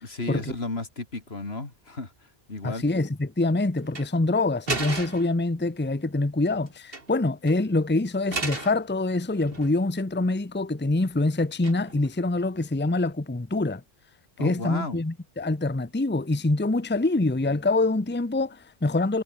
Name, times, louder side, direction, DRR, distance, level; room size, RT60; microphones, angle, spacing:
voice 1, 0.0-2.9 14.4-15.0, left 3 dB, 80° left, 3.4 m, -34 dB
voice 2, 2.6-13.8 14.4-19.2, left 2 dB, 10° left, 0.9 m, -25 dB
sound 1, 3.8-4.1 4.7-5.4 6.7-7.2 7.5-7.6 8.3-8.8 9.3-10.0 11.6-12.1, right 3 dB, 65° right, 3.0 m, -33 dB
omnidirectional pair, 1.0 m